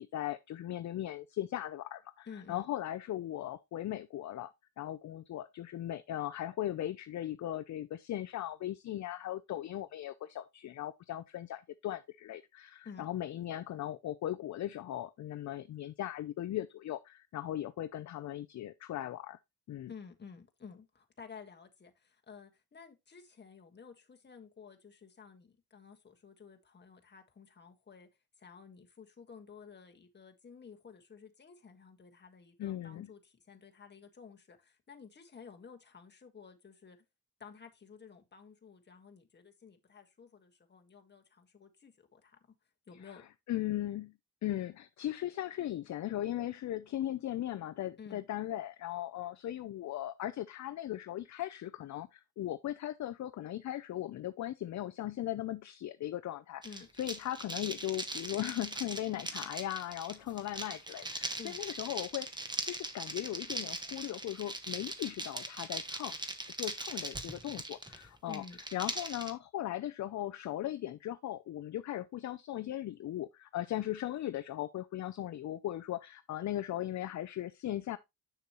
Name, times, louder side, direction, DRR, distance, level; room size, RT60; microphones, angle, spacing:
voice 1, 0.0-19.4 19.7-19.9 32.6-33.1 43.5-44.1 44.4-66.1 66.6-68.4 68.7-78.0, left 13 dB, 50° left, 0.5 m, -38 dB
voice 2, 2.3-2.7 12.8-13.1 19.9-28.1 28.4-37.0 37.4-42.5 42.9-43.3 48.0-48.2 56.6-56.9 61.4-61.6 68.3-68.6, left 6 dB, 30° left, 1.5 m, -53 dB
sound 1, 56.6-69.3, right 2 dB, 10° right, 1.2 m, -40 dB
7.0 x 6.7 x 3.0 m
cardioid pair, 125°, 37 cm